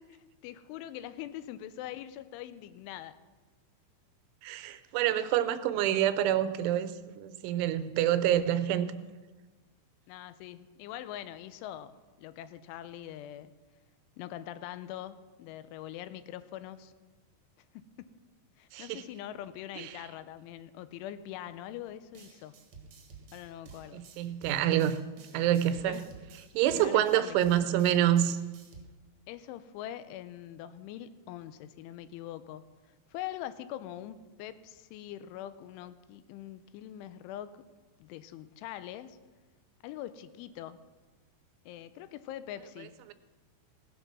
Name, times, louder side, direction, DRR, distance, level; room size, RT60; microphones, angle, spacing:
voice 1, 0.2-3.2 10.1-13.5 14.2-16.9 17.7-17.9 18.6-22.6 23.3-24.0 25.9-26.0 26.7-27.4 29.3-32.7 33.1-37.6 38.0-39.2 39.8-40.8 41.7-43.0, left 12 dB, 90° left, 13 dB, 3.2 m, -43 dB
voice 2, 4.4-9.0 18.7-19.0 19.8-19.9 23.9-25.0 25.3-26.1 26.5-28.4 43.1-43.2, right 11 dB, 85° right, 12 dB, 3.2 m, -27 dB
sound 1, 22.1-28.8, right 5 dB, 55° right, 2.0 m, -53 dB
18.0 x 10.5 x 6.0 m, 1.3 s
omnidirectional pair, 5.4 m